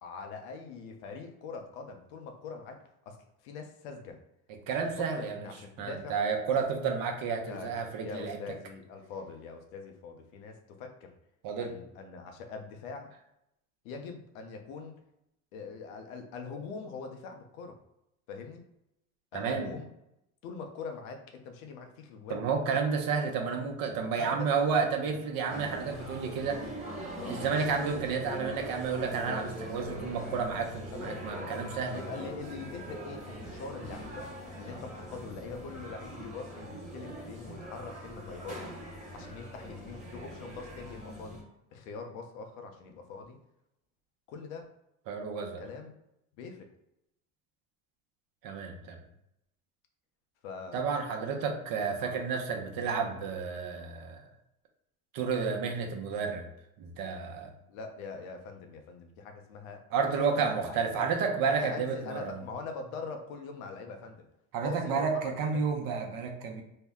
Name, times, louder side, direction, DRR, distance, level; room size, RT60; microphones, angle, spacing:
voice 1, 0.0-3.2 3.4-4.2 4.8-4.9 5.1-6.1 6.5-6.6 7.5-7.7 8.0-11.1 11.6-13.1 13.8-15.0 15.5-17.8 18.3-18.6 19.3-19.9 20.4-22.4 24.2-25.1 27.2-27.4 30.9-31.6 31.9-34.3 34.6-38.7 39.1-41.4 41.7-43.4 44.3-44.7 45.6-45.9 46.4-46.7 50.4-50.8 52.0-52.1 57.7-60.8 61.5-64.2 64.6-65.6, left 4 dB, 80° left, 4 dB, 0.7 m, -43 dB
voice 2, 4.7-5.5 5.8-8.4 11.4-11.7 19.3-19.7 22.3-26.7 27.3-32.1 45.1-45.6 48.4-49.0 50.7-54.2 55.1-56.5 56.8-57.5 59.9-62.4 64.5-66.6, right 5 dB, 55° right, 3 dB, 0.8 m, -31 dB
sound 1, 25.5-41.4, equal, 15° right, 1.3 m, -42 dB
2.7 x 2.1 x 3.4 m, 0.82 s
hypercardioid pair, 80°, 41 cm